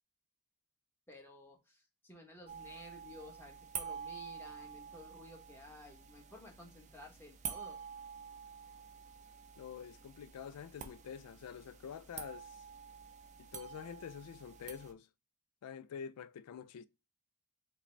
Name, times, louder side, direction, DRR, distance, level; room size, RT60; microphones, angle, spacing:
voice 1, 1.1-7.9, left 1 dB, 10° left, 1.0 m, -54 dB
sound 1, 2.5-14.9, right 7 dB, 35° right, 0.4 m, -48 dB
voice 2, 9.6-12.6 13.4-15.1 15.6-16.8, left 7 dB, 85° left, 0.4 m, -47 dB
4.9 x 2.0 x 3.2 m
head